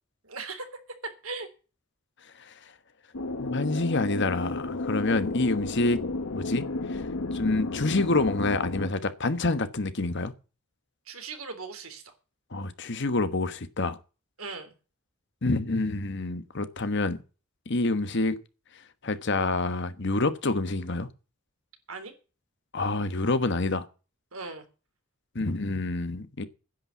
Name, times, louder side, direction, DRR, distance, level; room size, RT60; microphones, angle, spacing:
voice 1, 0.2-0.7 1.2-1.5 11.1-12.1 14.4-14.7 21.9-22.1 24.3-24.6, right 4 dB, 75° right, 3.4 m, -38 dB
sound 1, 3.1-8.9, left 2 dB, 80° left, 1.0 m, -32 dB
voice 2, 3.4-6.0 6.3-6.6 6.9-7.0 7.3-10.3 12.5-14.0 15.4-17.2 17.7-18.3 19.0-21.1 22.7-23.9 25.3-26.4, left 2 dB, 55° left, 1.2 m, -27 dB
10.5 x 8.9 x 8.2 m
head